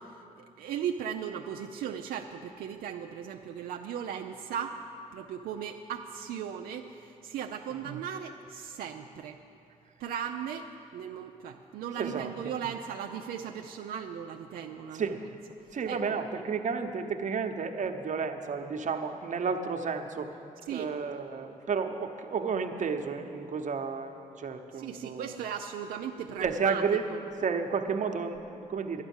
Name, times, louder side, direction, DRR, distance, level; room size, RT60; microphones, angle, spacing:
voice 1, 0.0-4.8 5.1-9.4 10.0-15.2 15.8-16.1 20.7-20.9 24.7-26.8 27.1-27.2, right 8 dB, 85° right, 3 dB, 0.5 m, -37 dB
voice 2, 12.0-12.5 14.9-15.2 15.7-20.3 20.7-25.3 26.4-27.1 27.4-29.0, right 5 dB, 55° right, 5 dB, 1.0 m, -32 dB
11.5 x 10.0 x 7.2 m, 2.7 s
cardioid pair, 70°, 15 cm